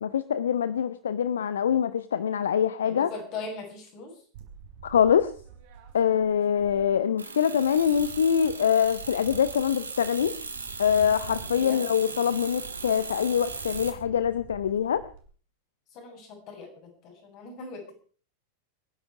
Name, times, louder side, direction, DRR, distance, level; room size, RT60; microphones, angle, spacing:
voice 1, 0.0-3.1 4.8-5.3 5.9-10.4 10.8-15.0, left 8 dB, 65° left, 16 dB, 0.8 m, -24 dB
voice 2, 2.8-4.2 11.5-11.8 15.9-17.9, left 4 dB, 40° left, 2 dB, 7.5 m, -40 dB
sound 1, 4.3-7.2 7.5-15.2, right 8 dB, 50° right, 4.1 m, -48 dB
sound 2, 7.2-13.9, right 4 dB, 75° right, 2.4 m, -38 dB
26.0 x 10.5 x 4.8 m, 0.43 s
figure-of-eight pair, 90°, 0 cm